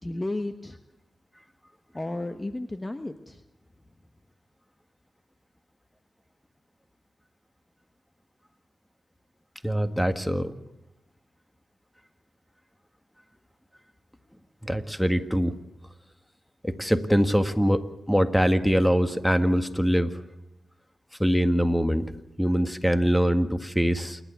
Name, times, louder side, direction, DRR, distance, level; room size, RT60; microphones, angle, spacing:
voice 1, 0.0-0.8 1.9-3.4, left 2 dB, 25° left, 8 dB, 1.2 m, -33 dB
voice 2, 9.6-10.5 14.6-15.6 16.6-20.1 21.2-22.1 22.4-24.2, equal, 5° left, 9 dB, 1.8 m, -23 dB
28.0 x 12.0 x 8.2 m, 0.94 s
cardioid pair, 50°, 0 cm